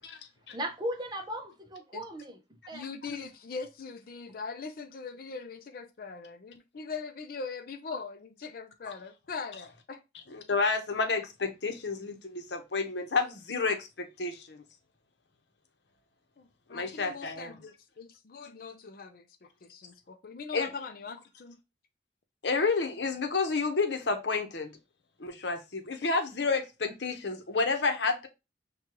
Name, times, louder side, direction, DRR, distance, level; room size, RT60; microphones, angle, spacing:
voice 1, 0.5-2.4 2.7-2.9, equal, 25° right, 0.6 m, -36 dB
voice 2, 2.7-10.0 16.4-21.6 26.0-26.1, left 4 dB, 55° left, 0.5 m, -41 dB
voice 3, 10.3-14.6 16.7-17.6 20.5-20.7 22.4-24.8 25.2-28.3, left 4 dB, 70° left, 0.8 m, -30 dB
6.1 x 2.3 x 2.9 m
head